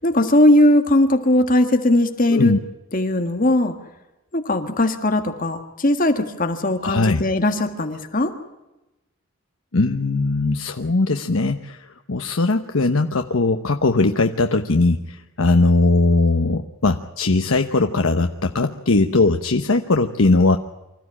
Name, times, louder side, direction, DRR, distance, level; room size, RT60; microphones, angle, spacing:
voice 1, 0.0-2.5 2.9-3.7 4.3-8.3, left 1 dB, 40° left, 7 dB, 1.7 m, -19 dB
voice 2, 6.8-7.2 9.7-20.6, left 3 dB, 65° left, 6 dB, 1.0 m, -19 dB
25.0 x 14.5 x 9.9 m, 0.99 s
head